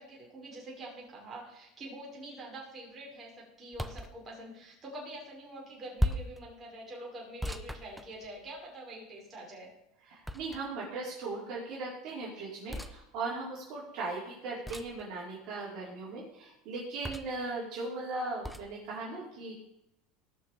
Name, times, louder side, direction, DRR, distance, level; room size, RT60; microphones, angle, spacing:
voice 1, 0.0-9.7, right 1 dB, 30° right, -3 dB, 5.7 m, -45 dB
sound 1, 3.7-4.1 6.0-6.4 7.4-8.6 10.2-10.8 12.7-13.0 14.6-15.0 17.0-17.4 18.4-18.7, equal, ahead, 0.9 m, -35 dB
voice 2, 10.1-19.5, right 3 dB, 55° right, -5 dB, 4.7 m, -38 dB
18.5 x 6.5 x 5.3 m, 0.87 s
supercardioid pair, 115°, 0 cm